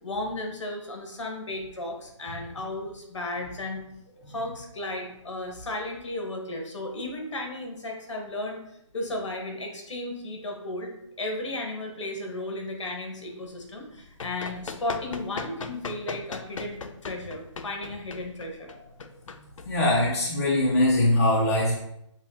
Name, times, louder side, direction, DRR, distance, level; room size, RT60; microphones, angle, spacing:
voice 1, 0.0-3.8 4.3-8.6 8.9-10.9 11.2-18.7, left 2 dB, 65° left, 2 dB, 1.2 m, -34 dB
Run, 13.8-20.3, left 4 dB, 80° left, 0.5 m, -39 dB
voice 2, 19.6-21.8, left 1 dB, 30° left, -5 dB, 0.8 m, -22 dB
7.0 x 2.3 x 2.7 m, 0.78 s
hypercardioid pair, 170°, 16 cm